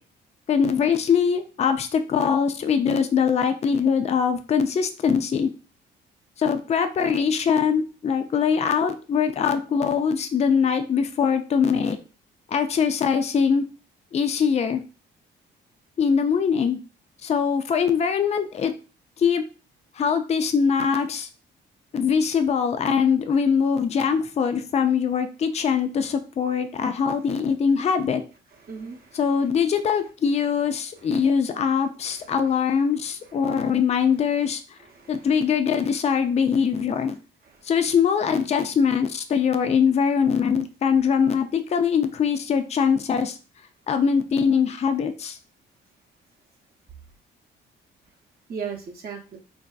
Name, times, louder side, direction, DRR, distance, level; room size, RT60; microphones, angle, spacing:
voice 1, 0.5-5.5 6.4-12.0 12.5-13.6 14.1-14.8 16.0-16.8 17.2-18.7 19.2-19.4 20.0-21.3 21.9-28.2 29.1-34.6 35.1-37.2 37.6-43.4 43.9-45.4, left 6 dB, 35° left, 8 dB, 0.4 m, -22 dB
voice 2, 28.6-29.2 32.1-32.3 34.9-35.3 37.4-37.6 48.5-49.4, right 6 dB, 50° right, 0 dB, 0.7 m, -37 dB
3.3 x 2.6 x 2.3 m, 0.35 s
cardioid pair, 90°, 20 cm